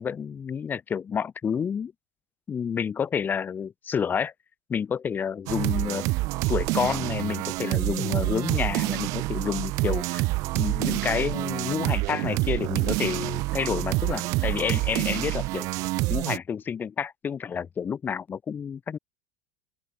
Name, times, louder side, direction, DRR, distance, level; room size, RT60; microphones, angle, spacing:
voice 1, 0.0-1.9 2.5-4.3 4.7-6.1 6.5-10.2 10.5-15.7 16.1-19.0, left 7 dB, 30° left, 3.4 m, -29 dB
sound 1, 5.5-16.4, right 22 dB, 55° right, 0.4 m, -27 dB
open air
supercardioid pair, 105°, 7 cm